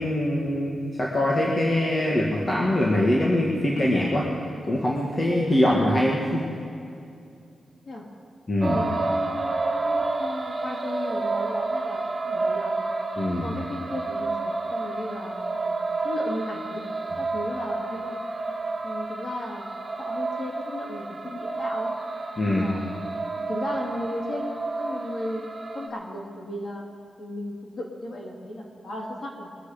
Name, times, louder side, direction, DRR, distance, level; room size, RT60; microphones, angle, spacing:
voice 1, 0.0-4.3 4.7-6.4 8.5-8.8 13.2-13.5 22.4-22.6, left 1 dB, 30° left, -3 dB, 1.9 m, -23 dB
sound 1, 8.6-25.9, right 3 dB, 35° right, 2.3 m, -30 dB
voice 2, 8.7-9.5 9.8-12.8 13.4-16.8 17.1-18.2 18.8-19.7 20.0-21.9 22.4-25.4 25.7-26.9 27.2-29.5, left 1 dB, 50° left, -2 dB, 3.0 m, -35 dB
22.5 x 7.9 x 5.2 m, 2.5 s
cardioid pair, 90°, 0 cm